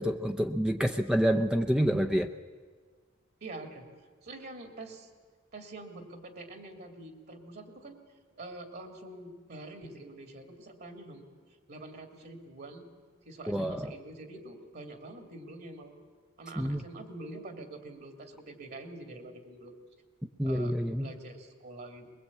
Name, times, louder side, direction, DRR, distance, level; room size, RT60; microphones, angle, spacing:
voice 1, 0.0-2.3 13.5-13.9 16.6-16.8 20.4-21.1, equal, 5° right, 5 dB, 0.6 m, -28 dB
voice 2, 3.4-3.9 4.2-5.1 5.5-8.0 8.3-11.2 11.7-12.9 13.3-15.9 16.4-19.7 20.4-22.1, right 2 dB, 50° right, 5 dB, 2.6 m, -45 dB
22.0 x 21.5 x 8.6 m, 1.5 s
head